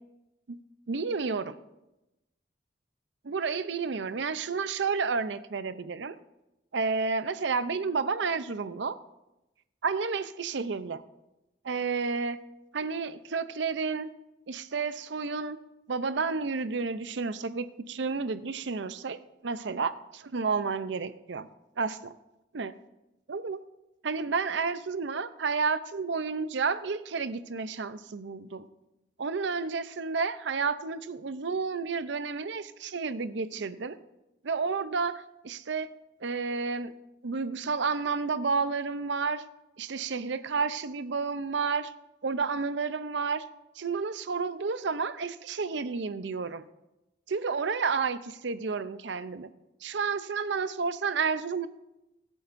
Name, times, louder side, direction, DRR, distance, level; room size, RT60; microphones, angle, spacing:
voice 1, 0.9-1.6 3.2-6.1 6.7-9.0 9.8-11.0 11.6-12.4 12.7-14.1 14.5-15.6 15.9-19.2 19.4-21.5 21.8-22.1 22.5-22.7 23.3-23.6 24.0-28.7 29.2-34.0 34.4-35.9 36.2-36.9 37.2-39.4 39.8-41.9 42.2-43.4 43.8-46.6 47.3-49.5 49.8-51.7, right 4 dB, 70° right, 13 dB, 0.6 m, -31 dB
23.5 x 8.5 x 2.6 m, 0.96 s
head